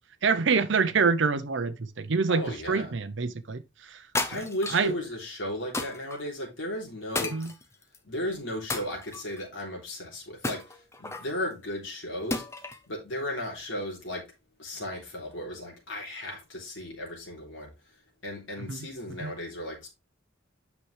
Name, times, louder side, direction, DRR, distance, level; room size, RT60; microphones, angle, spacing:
voice 1, 0.2-3.6 3.9-4.0 4.7-4.9 7.3-7.5 18.7-18.8 19.2-19.3, right 5 dB, 65° right, 0.6 m, -26 dB
voice 2, 2.3-2.9 4.3-7.4 8.0-12.5 12.9-14.3 14.6-17.7 18.2-19.9, left 1 dB, 70° left, 3.4 m, -35 dB
sound 1, 4.1-4.9 5.7-6.2 7.1-8.0 8.7-9.4 10.4-11.3 12.3-12.9, left 2 dB, 15° left, 0.6 m, -33 dB
8.1 x 5.8 x 3.2 m
head